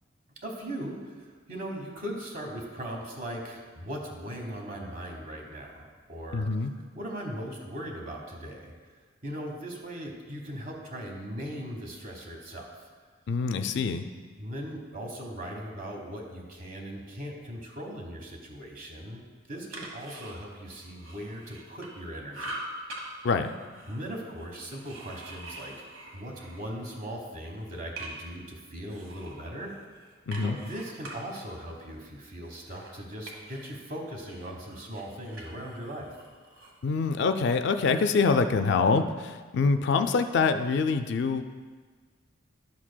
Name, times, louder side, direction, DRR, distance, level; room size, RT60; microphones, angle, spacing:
voice 1, 0.4-6.7 6.9-12.9 14.4-19.2 19.5-22.5 23.0-23.1 23.9-25.9 26.1-29.7 30.4-36.1, equal, 40° right, 1 dB, 1.2 m, -39 dB
voice 2, 6.3-6.7 13.3-14.0 23.2-23.5 30.3-30.6 36.8-41.4, left 4 dB, 60° left, 9 dB, 0.3 m, -25 dB
sound 1, 19.5-22.0 22.3-23.0 23.4-27.0 27.3-28.4 28.9-33.9 34.2-36.8, right 1 dB, 90° right, 1.3 m, -45 dB
11.0 x 7.4 x 2.2 m, 1.5 s
head